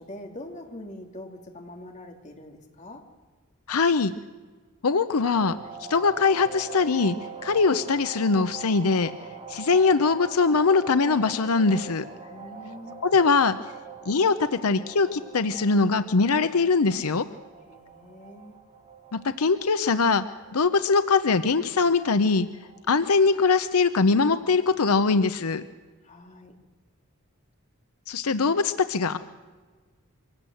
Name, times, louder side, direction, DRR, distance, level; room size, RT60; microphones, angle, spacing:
voice 1, 0.0-3.0 12.3-13.0 17.6-18.6 26.0-26.5, left 1 dB, 35° left, 2 dB, 2.8 m, -43 dB
voice 2, 3.7-4.1 4.8-5.5 5.9-7.2 7.4-9.1 9.5-12.0 13.0-13.6 14.1-17.2 19.1-20.2 20.5-22.5 22.9-25.6 28.1-29.2, left 4 dB, 85° left, 11 dB, 0.7 m, -22 dB
sound 1, 5.2-23.8, right 6 dB, 30° right, 3.4 m, -43 dB
24.5 x 17.5 x 7.9 m, 1.4 s
head